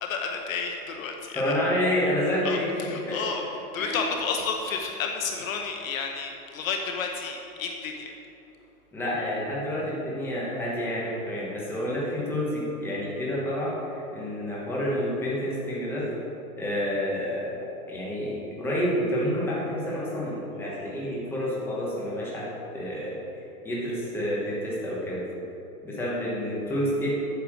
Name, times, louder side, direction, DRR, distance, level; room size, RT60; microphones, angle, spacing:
voice 1, 0.0-1.6 2.4-3.4 3.7-8.1, left 5 dB, 60° left, 3 dB, 1.0 m, -31 dB
voice 2, 1.3-3.3 3.8-4.0 8.9-16.1 16.6-23.2 23.6-25.2 25.8-27.1, equal, 5° left, -6 dB, 1.2 m, -29 dB
8.7 x 6.6 x 6.2 m, 2.9 s
supercardioid pair, 175°, 46 cm